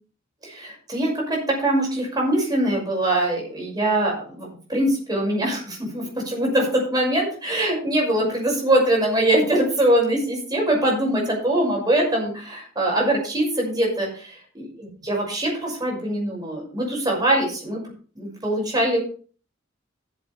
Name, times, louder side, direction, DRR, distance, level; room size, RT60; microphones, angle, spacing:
voice 1, 0.4-17.8 18.2-19.0, right 1 dB, 20° right, -1 dB, 6.0 m, -23 dB
15.0 x 8.1 x 3.5 m, 0.40 s
head